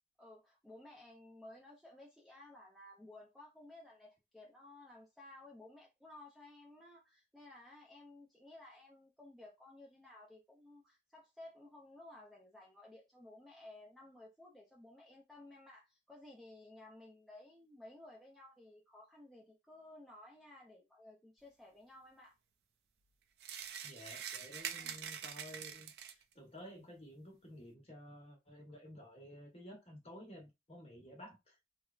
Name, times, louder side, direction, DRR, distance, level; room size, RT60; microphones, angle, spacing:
voice 1, 0.2-22.4 24.8-25.0, left 2 dB, ahead, 0.5 m, -56 dB
sound 1, 23.4-26.3, right 8 dB, 60° right, 0.3 m, -45 dB
voice 2, 23.8-25.9 26.3-31.4, equal, 35° left, 1.0 m, -53 dB
3.3 x 2.0 x 2.3 m
head